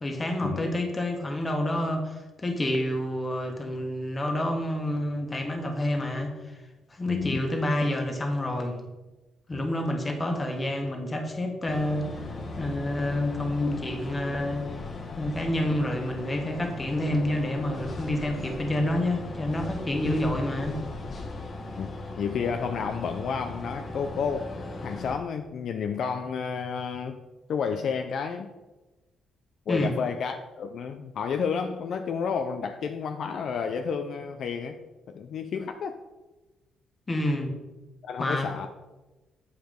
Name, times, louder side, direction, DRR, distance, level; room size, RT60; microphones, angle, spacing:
voice 1, 0.0-6.3 6.9-8.8 9.5-12.0 12.6-14.7 15.1-20.8 29.7-30.0 37.1-37.5 38.2-38.5, left 1 dB, 25° left, 3 dB, 1.5 m, -28 dB
voice 2, 7.1-7.4 9.5-9.7 21.8-21.9 22.2-27.2 27.5-28.5 29.7-34.8 35.1-36.0 38.0-38.7, left 6 dB, 65° left, 6 dB, 0.5 m, -31 dB
sound 1, 11.7-25.1, left 2 dB, 45° left, 1.1 m, -38 dB
8.1 x 4.9 x 5.2 m, 1.1 s
cardioid pair, 90°, 0 cm